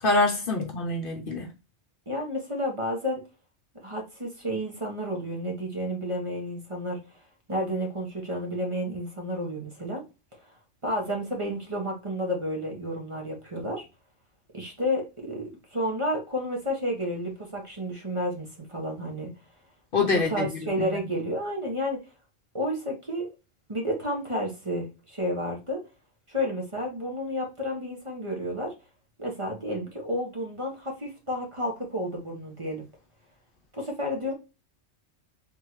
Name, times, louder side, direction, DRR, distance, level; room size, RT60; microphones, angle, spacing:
voice 1, 0.0-1.5 19.9-20.5 20.8-20.9, left 3 dB, 55° left, 0.9 m, -25 dB
voice 2, 2.1-3.2 3.8-7.0 7.5-10.0 10.8-13.8 14.5-19.3 20.1-22.0 22.5-23.3 23.7-25.8 26.3-28.7 29.2-32.8 33.7-34.3, equal, 30° right, 1.2 m, -31 dB
3.8 x 3.6 x 3.1 m
omnidirectional pair, 1.2 m